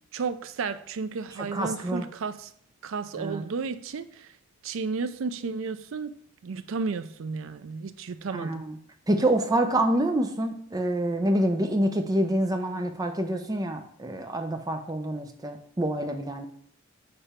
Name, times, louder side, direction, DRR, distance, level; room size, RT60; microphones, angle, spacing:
voice 1, 0.1-2.5 2.8-4.3 4.6-6.1 6.4-8.6, right 4 dB, 70° right, 0.4 m, -33 dB
voice 2, 1.4-2.1 3.2-3.5 8.3-8.8 9.1-16.5, right 1 dB, 20° right, 0.6 m, -27 dB
6.8 x 3.4 x 4.2 m
head